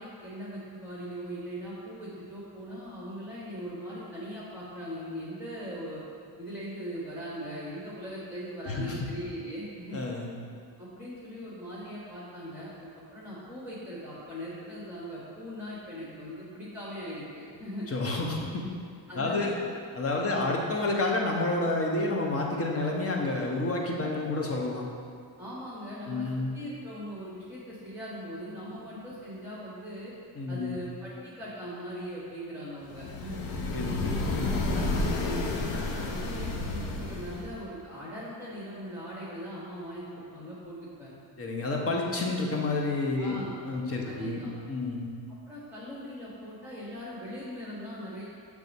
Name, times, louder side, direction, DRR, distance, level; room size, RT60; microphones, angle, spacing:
voice 1, 0.0-6.0 6.4-10.0 10.8-17.9 19.1-19.5 20.2-20.6 25.4-26.3 26.5-30.1 30.5-33.4 34.2-34.3 34.7-41.1 42.2-42.4 43.2-43.5 44.0-44.5 45.5-48.2, equal, 5° right, -9 dB, 1.4 m, -40 dB
voice 2, 8.6-9.1 9.9-10.3 17.9-18.6 19.1-19.6 19.9-24.8 26.0-26.5 30.3-30.8 33.7-34.5 41.4-44.4 44.7-45.1, left 2 dB, 35° left, -1 dB, 1.0 m, -29 dB
sound 1, 32.9-37.6, left 2 dB, 90° left, 0.9 m, -31 dB
6.7 x 3.5 x 5.3 m, 2.2 s
cardioid pair, 115°, 43 cm